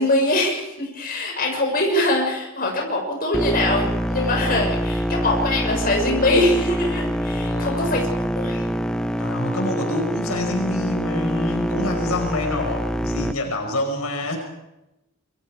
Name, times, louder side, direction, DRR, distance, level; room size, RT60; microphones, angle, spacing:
voice 1, 0.0-8.0 8.4-8.6, left 1 dB, 40° left, 0 dB, 6.7 m, -22 dB
sound 1, 3.3-13.3, equal, 5° left, 0.8 m, -25 dB
voice 2, 7.3-8.0 9.2-14.4, left 1 dB, 85° left, 2 dB, 5.5 m, -27 dB
27.5 x 24.5 x 5.0 m, 0.91 s
head